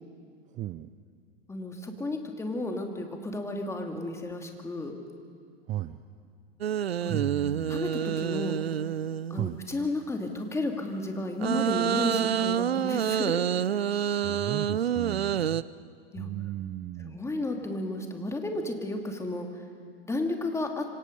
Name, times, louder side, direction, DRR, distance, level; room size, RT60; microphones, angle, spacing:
voice 1, 0.5-0.9 5.7-6.0 7.1-7.8 9.3-9.6 13.9-15.6 16.2-17.2, right 13 dB, 25° right, 13 dB, 0.6 m, -35 dB
voice 2, 1.5-4.9 7.0-7.3 7.7-8.6 9.3-13.4 16.1-16.3 17.0-19.6 20.1-20.8, left 2 dB, 10° left, 3 dB, 2.6 m, -33 dB
sound 1, 6.6-9.6 11.4-15.6, right 9 dB, 80° right, 0.6 m, -28 dB
26.5 x 25.0 x 5.4 m, 2.2 s
figure-of-eight pair, 95°, 30 cm